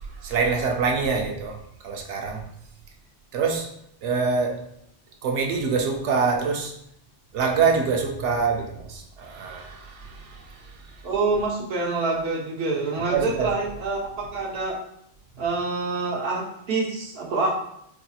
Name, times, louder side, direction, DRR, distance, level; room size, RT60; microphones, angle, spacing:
voice 1, 0.0-1.6 1.8-2.5 3.3-3.7 4.0-4.6 5.2-6.7 7.3-11.0 13.1-13.5 15.3-15.4, right 5 dB, 85° right, 2 dB, 1.0 m, -25 dB
voice 2, 11.0-14.8 15.4-17.7, right 3 dB, 65° right, -2 dB, 1.1 m, -26 dB
4.7 x 2.8 x 2.3 m, 0.74 s
omnidirectional pair, 1.2 m